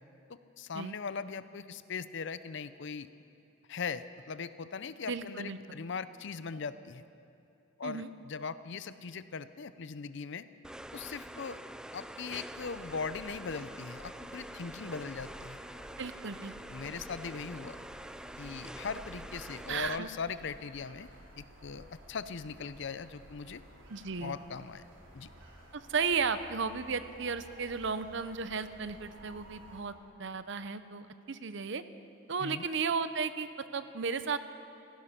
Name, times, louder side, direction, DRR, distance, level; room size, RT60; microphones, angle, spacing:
voice 1, 0.3-3.1 3.7-7.0 7.8-10.5 10.9-11.6 11.9-15.6 16.7-17.8 18.4-21.1 21.4-23.6 24.2-24.8 25.1-25.3 32.4-32.6, left 5 dB, 65° left, 14 dB, 0.6 m, -40 dB
voice 2, 5.1-5.6 7.8-8.1 16.0-16.5 19.7-20.1 23.9-24.4 25.7-29.9 30.2-31.8 32.3-34.4, right 5 dB, 70° right, 12 dB, 0.7 m, -34 dB
sound 1, 10.6-20.0, right 1 dB, 5° right, 0.3 m, -46 dB
sound 2, 12.6-29.8, right 1 dB, 90° right, 3.1 m, -54 dB
16.5 x 15.0 x 5.8 m, 2.6 s
head